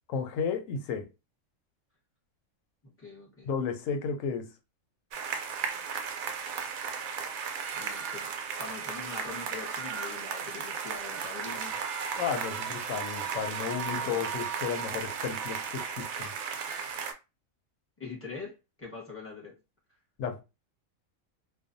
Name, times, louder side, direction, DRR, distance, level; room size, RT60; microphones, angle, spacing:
voice 1, 0.1-1.1 3.4-4.5 12.2-16.3 20.2-20.4, left 6 dB, 75° left, 0.9 m, -33 dB
voice 2, 2.8-3.5 7.7-8.3 8.6-11.8 13.7-14.2 14.8-14.9 18.0-19.5, left 4 dB, 10° left, 0.9 m, -43 dB
sound 1, 5.1-17.1, right 6 dB, 90° right, 1.0 m, -35 dB
2.4 x 2.2 x 2.6 m
omnidirectional pair, 1.4 m